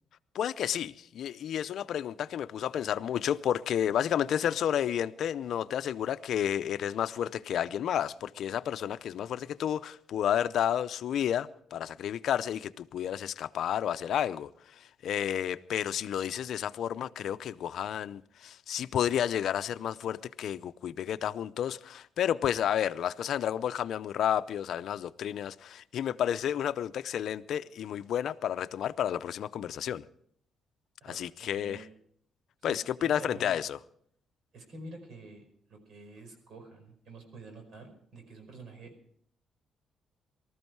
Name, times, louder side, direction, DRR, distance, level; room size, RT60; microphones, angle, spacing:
voice 1, 0.3-14.5 14.8-30.0 31.1-31.8 32.6-33.8, left 10 dB, 70° left, 0.6 m, -31 dB
voice 2, 31.0-31.9 32.6-33.7 34.5-35.4 35.7-38.9, right 2 dB, 65° right, 5.0 m, -48 dB
19.5 x 13.5 x 4.6 m
cardioid pair, 90°, 0 cm